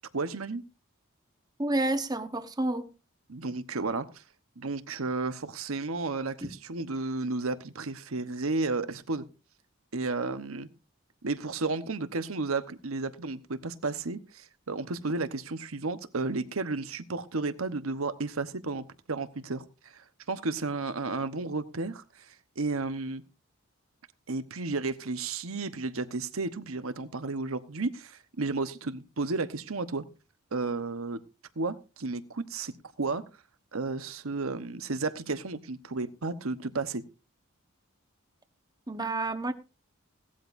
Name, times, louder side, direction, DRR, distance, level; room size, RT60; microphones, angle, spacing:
voice 1, 0.1-0.6 3.3-4.2 4.6-9.2 9.9-10.7 11.2-23.2 24.3-30.0 30.5-31.2 31.6-33.2 33.7-37.0, right 3 dB, 80° right, 11 dB, 1.1 m, -33 dB
voice 2, 1.6-2.8 6.4-6.5 38.9-39.5, right 2 dB, 20° right, 8 dB, 1.1 m, -29 dB
17.5 x 13.0 x 2.6 m, 0.30 s
head